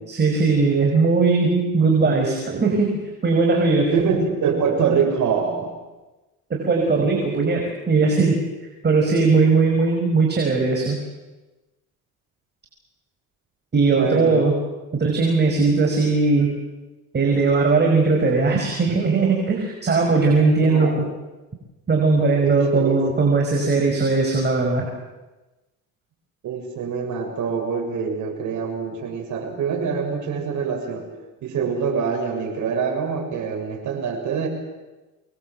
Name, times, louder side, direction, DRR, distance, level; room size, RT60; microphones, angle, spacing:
voice 1, 0.0-3.9 6.5-8.3 8.8-11.0 13.7-14.5 14.9-16.5 17.1-20.9 21.9-24.9, right 4 dB, 30° right, 1 dB, 5.7 m, -19 dB
voice 2, 3.9-5.7 13.9-14.5 20.6-21.0 22.4-23.0 26.4-31.1 31.4-34.5, right 6 dB, 60° right, 3 dB, 7.3 m, -24 dB
25.5 x 21.5 x 8.0 m, 1.1 s
cardioid pair, 95°, 33 cm